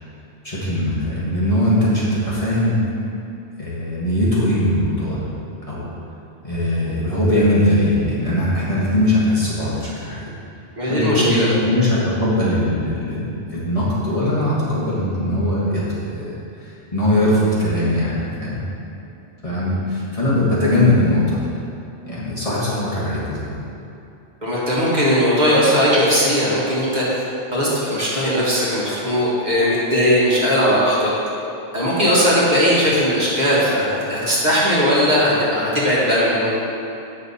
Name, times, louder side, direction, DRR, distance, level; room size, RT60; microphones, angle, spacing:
voice 1, 0.4-2.8 3.6-5.3 5.6-5.9 6.4-10.2 10.9-18.7 19.4-21.4 22.1-23.6, left 1 dB, 30° left, -9 dB, 1.4 m, -20 dB
voice 2, 10.8-11.5 24.4-27.2 27.5-31.1 31.7-36.5, equal, 40° right, -8 dB, 1.7 m, -18 dB
8.2 x 5.5 x 4.1 m, 2.8 s
omnidirectional pair, 1.2 m